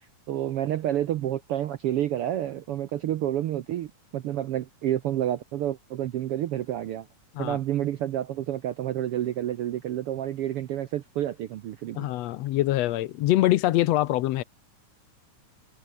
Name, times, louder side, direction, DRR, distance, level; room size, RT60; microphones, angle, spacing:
voice 1, 0.3-7.1 7.4-12.1, right 12 dB, 70° right, 1.4 m, -29 dB
voice 2, 12.0-14.4, left 15 dB, 70° left, 1.7 m, -24 dB
omnidirectional pair, 3.5 m